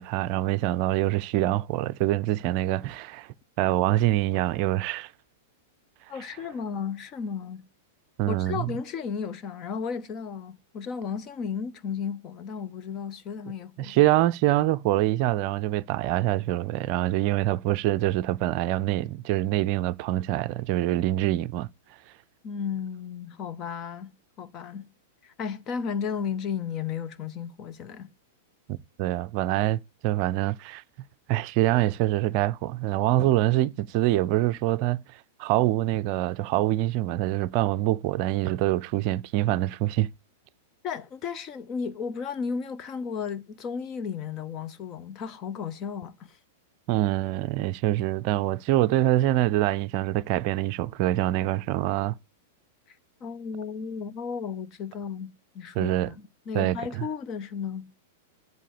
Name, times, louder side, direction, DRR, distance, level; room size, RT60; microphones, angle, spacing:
voice 1, 0.0-5.1 8.2-8.7 13.8-21.7 28.7-30.8 31.3-40.1 46.9-52.2 55.8-56.1 56.5-57.1, right 15 dB, 45° right, 0.5 m, -25 dB
voice 2, 6.1-7.7 8.3-14.0 22.4-24.9 25.2-28.1 40.8-46.4 53.2-57.9, left 6 dB, 35° left, 1.0 m, -34 dB
8.2 x 7.5 x 6.7 m
figure-of-eight pair, 95°, 0 cm